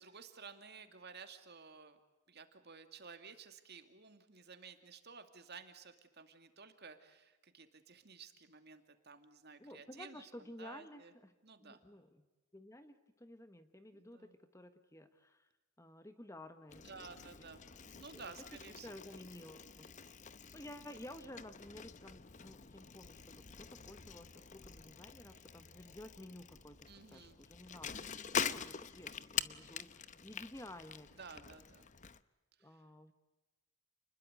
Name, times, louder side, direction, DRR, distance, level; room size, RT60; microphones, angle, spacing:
voice 1, 0.0-2.0 2.3-11.1 11.4-11.8 13.9-14.3 16.8-19.2 26.9-27.4 28.3-28.6 31.2-31.9 32.6-32.8, right 5 dB, 50° right, 8 dB, 2.5 m, -54 dB
voice 2, 9.6-11.3 11.6-12.3 12.5-15.5 15.8-17.1 18.1-18.2 18.8-19.9 20.5-28.1 28.5-28.7 28.9-31.1 32.6-33.1, left 1 dB, 15° left, 9 dB, 1.3 m, -53 dB
Bicycle, 16.7-32.2, left 7 dB, 35° left, 0.8 m, -45 dB
29.5 x 21.5 x 8.1 m, 1.1 s
head